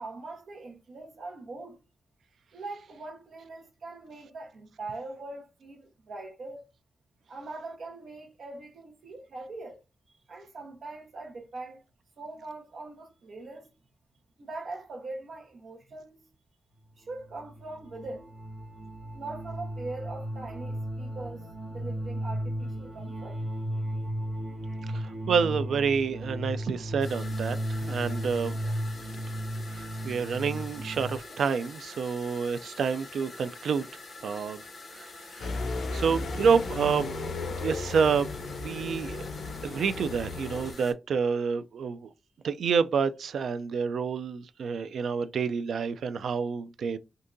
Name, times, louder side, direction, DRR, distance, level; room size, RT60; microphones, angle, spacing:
voice 1, 0.0-1.8 2.5-6.7 7.3-9.8 10.3-11.8 12.2-13.7 14.4-16.3 17.0-18.3 19.1-23.4, right 2 dB, 60° right, 1.0 m, -42 dB
sound 1, 17.1-31.2, right 1 dB, 35° right, 1.4 m, -35 dB
voice 2, 24.9-28.6 29.7-33.9 34.2-34.6 34.9-35.1 35.4-35.5 35.9-37.1 37.5-38.3 38.6-39.3 39.6-42.1 42.4-47.0, right 6 dB, 80° right, 0.3 m, -28 dB
sound 2, 27.0-40.9, left 3 dB, 50° left, 1.2 m, -46 dB
sound 3, 35.4-40.7, left 3 dB, 75° left, 0.7 m, -35 dB
3.6 x 2.7 x 2.5 m
wide cardioid pair, 180°, 0 cm